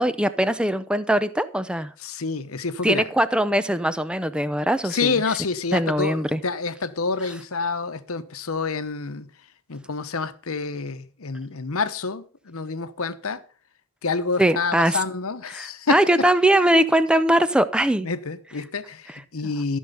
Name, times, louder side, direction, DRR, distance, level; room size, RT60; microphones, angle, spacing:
voice 1, 0.0-1.9 2.8-5.1 5.7-6.4 14.4-15.0 15.5-18.1, right 1 dB, 5° right, 0.5 m, -21 dB
voice 2, 2.0-3.0 4.8-9.3 9.7-13.4 14.0-16.0 18.0-19.8, left 4 dB, 70° left, 1.0 m, -28 dB
14.5 x 6.4 x 5.6 m
head